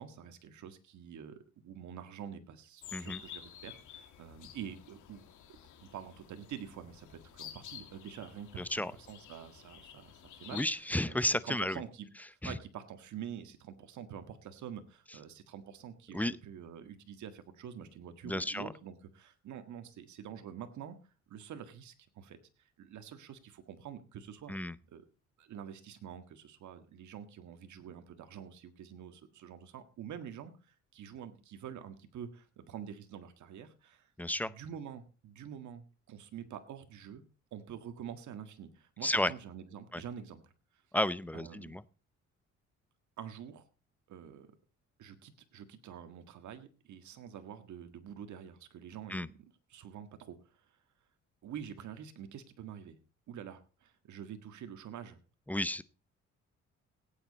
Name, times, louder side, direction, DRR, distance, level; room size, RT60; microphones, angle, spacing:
voice 1, 0.0-21.0 21.3-22.4 22.8-24.5 24.9-25.0 25.4-34.1 34.4-37.2 37.5-40.5 41.3-41.8 43.2-43.6 44.1-44.5 45.0-49.4 49.7-50.4 51.4-53.0 53.3-55.2, right 8 dB, 70° right, 9 dB, 1.8 m, -47 dB
sound 1, 2.8-10.7, left 10 dB, 80° left, 2.4 m, -51 dB
voice 2, 8.6-8.9 10.5-11.8 12.4-12.5 16.1-16.4 18.2-18.7 24.5-24.7 34.2-34.5 39.0-39.3 39.9-40.0 40.9-41.8 49.1-49.3 55.5-55.8, left 1 dB, 5° left, 17 dB, 0.6 m, -32 dB
17.5 x 9.0 x 4.1 m, 0.36 s
cardioid pair, 90°, 30 cm